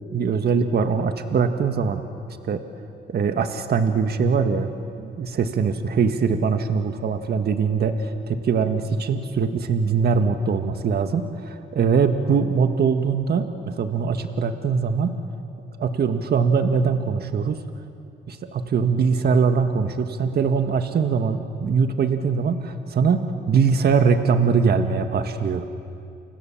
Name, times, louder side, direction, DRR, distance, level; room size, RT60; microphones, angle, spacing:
voice 1, 0.1-2.0 2.5-2.6 3.1-4.7 5.0-15.2 15.8-17.6 18.3-25.7, right 5 dB, 55° right, 7 dB, 1.7 m, -22 dB
30.0 x 25.0 x 7.3 m, 2.5 s
cardioid pair, 90°, 20 cm